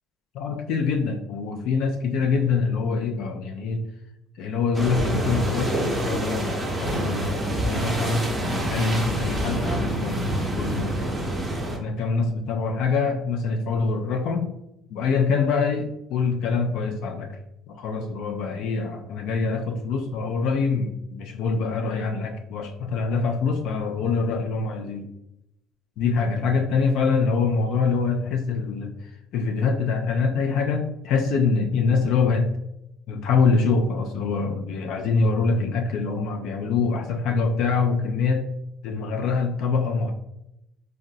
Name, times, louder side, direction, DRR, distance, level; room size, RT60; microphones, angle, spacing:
voice 1, 0.3-3.9 4.4-11.0 11.8-14.5 14.9-17.4 17.7-25.1 26.0-32.5 33.1-38.5 38.8-40.1, left 4 dB, 70° left, 5 dB, 0.3 m, -25 dB
sound 1, 4.7-11.8, right 1 dB, 10° right, 0.7 m, -27 dB
3.9 x 2.0 x 2.6 m, 0.84 s
cardioid pair, 120°, 0 cm